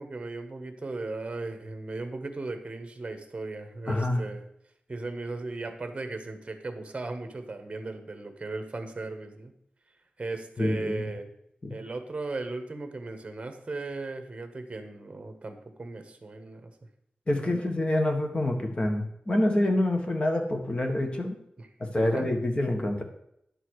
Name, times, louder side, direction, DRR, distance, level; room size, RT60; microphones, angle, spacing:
voice 1, 0.0-4.4 4.9-9.5 10.2-11.3 11.7-16.7 17.4-17.6 21.6-21.7 22.0-22.3, right 3 dB, 35° right, 7 dB, 1.4 m, -37 dB
voice 2, 3.9-4.2 10.6-11.0 11.6-11.8 17.3-21.4 21.8-23.0, left 1 dB, 30° left, 4 dB, 1.6 m, -27 dB
10.0 x 6.8 x 4.8 m, 0.76 s
wide cardioid pair, 120°, 3 cm